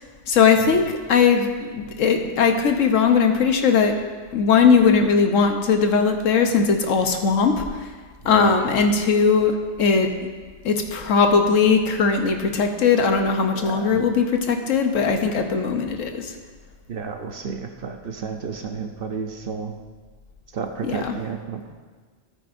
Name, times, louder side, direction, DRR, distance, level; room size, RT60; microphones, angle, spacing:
voice 1, 0.3-4.0 4.3-7.6 8.2-10.3 10.6-16.3 20.8-21.2, left 5 dB, 85° left, 5 dB, 1.3 m, -19 dB
voice 2, 13.5-14.0 16.9-19.7 20.5-21.7, right 5 dB, 55° right, 5 dB, 0.8 m, -31 dB
14.0 x 9.1 x 2.6 m, 1.4 s
omnidirectional pair, 1.3 m